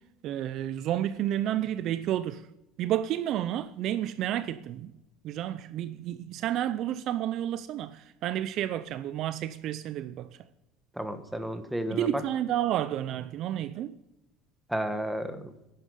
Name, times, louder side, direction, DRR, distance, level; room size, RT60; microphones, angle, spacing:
voice 1, 0.2-2.5 2.8-4.9 5.2-10.3 11.9-14.0, right 12 dB, 45° right, 0.5 m, -31 dB
voice 2, 10.9-12.2 14.7-15.5, equal, ahead, 1.2 m, -32 dB
11.0 x 9.0 x 9.3 m
cardioid pair, 160°, 0 cm